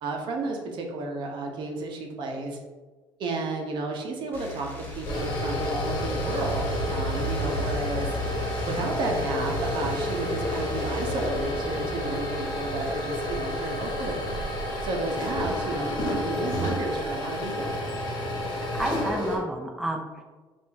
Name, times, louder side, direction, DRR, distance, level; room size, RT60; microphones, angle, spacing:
voice 1, 0.0-2.6 3.2-8.2 8.6-14.2 14.8-17.7, right 3 dB, 60° right, 1 dB, 0.9 m, -32 dB
sound 1, 4.3-11.3, left 1 dB, 20° left, 1.1 m, -41 dB
sound 2, 4.9-19.4, left 1 dB, 45° left, 1.2 m, -29 dB
voice 2, 18.5-20.2, right 1 dB, 5° right, 0 dB, 0.5 m, -31 dB
4.9 x 2.6 x 3.5 m, 1.3 s
cardioid pair, 120°, 9 cm